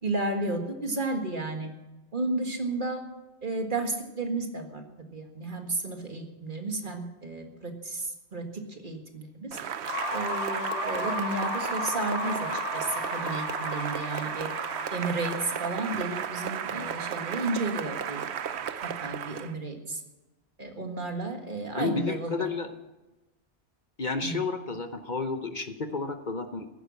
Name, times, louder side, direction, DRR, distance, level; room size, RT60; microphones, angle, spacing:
voice 1, 0.0-1.7 2.1-3.0 3.4-4.8 5.1-9.6 10.1-14.5 14.9-18.2 18.8-20.0 20.6-22.5 24.2-24.4, right 2 dB, 45° right, 4 dB, 1.9 m, -33 dB
Cheering / Applause, 9.5-19.6, right 8 dB, 70° right, 1.0 m, -34 dB
sound 1, 9.8-17.7, left 3 dB, 90° left, 3.4 m, -36 dB
voice 2, 21.8-22.7 24.0-26.7, left 4 dB, 45° left, 8 dB, 1.0 m, -31 dB
15.0 x 11.5 x 6.3 m, 1.1 s
omnidirectional pair, 1.2 m